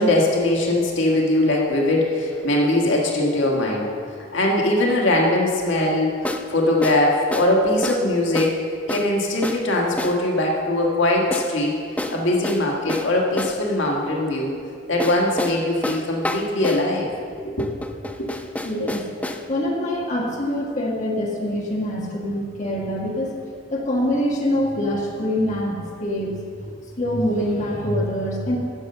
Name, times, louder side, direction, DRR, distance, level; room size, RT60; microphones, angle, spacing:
voice 1, 0.0-3.8 4.2-6.1 6.5-8.6 8.9-11.8 12.1-14.5 14.9-17.1 17.4-17.7 18.2-18.3, left 1 dB, 80° left, -2 dB, 1.6 m, -21 dB
sound 1, 2.3-2.4 6.2-6.5 6.8-7.0 7.3-7.5 7.8-8.1 8.3-8.6 8.9-9.1 9.4-9.7 10.0-10.2 11.3-11.5 12.0-13.6 15.0-16.9 17.6-19.5, left 1 dB, 10° left, 0.4 m, -29 dB
voice 2, 18.6-19.0 19.5-23.4 23.7-26.3 27.0-28.6, left 1 dB, 40° left, -2 dB, 1.5 m, -24 dB
10.0 x 6.8 x 6.6 m, 2.3 s
head